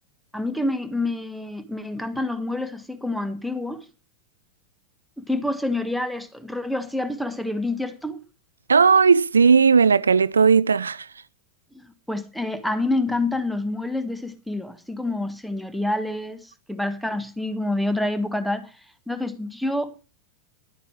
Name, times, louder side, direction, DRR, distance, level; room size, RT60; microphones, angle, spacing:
voice 1, 0.3-3.8 5.2-8.2 11.7-18.8 19.1-19.9, left 2 dB, ahead, 1.5 m, -27 dB
voice 2, 8.7-11.1, right 5 dB, 75° right, 0.5 m, -16 dB
12.0 x 9.0 x 4.7 m
figure-of-eight pair, 90°, 0 cm